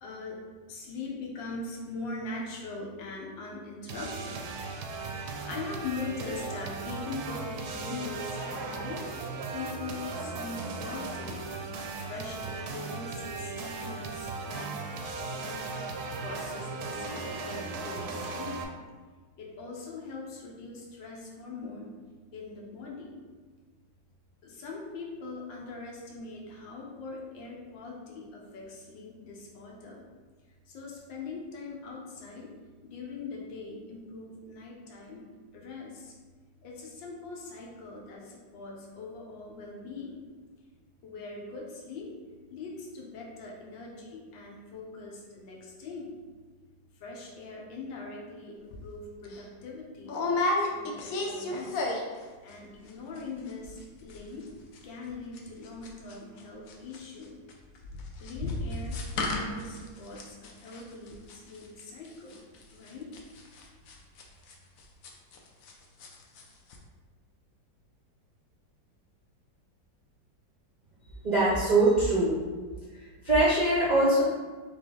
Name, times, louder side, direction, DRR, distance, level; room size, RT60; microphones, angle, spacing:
voice 1, 0.0-0.4 0.7-4.4 5.5-9.0 9.5-11.4 12.1-14.8 15.2-15.9 16.2-18.6 19.4-22.0 22.3-23.2 24.4-30.0 30.7-32.5 32.8-35.3 35.5-36.1 36.6-40.2 41.0-42.1 42.5-46.1 47.0-50.2 50.6-51.9 52.4-54.4 54.8-57.4 58.2-62.4 62.7-63.1, left 3 dB, 85° left, -2 dB, 1.6 m, -41 dB
sound 1, 3.9-18.6, right 3 dB, 70° right, 1.0 m, -37 dB
sound 2, 48.7-48.9 49.2-49.4 50.1-52.2 52.5-52.9 53.2-53.3 53.5-53.8 54.1-56.4 56.7-65.7 66.0-66.4 66.7-66.8, left 2 dB, 65° left, 0.9 m, -33 dB
voice 2, 71.2-72.4 73.0-74.2, right 2 dB, 50° right, -8 dB, 0.5 m, -23 dB
3.9 x 3.5 x 3.7 m, 1.4 s
omnidirectional pair, 2.0 m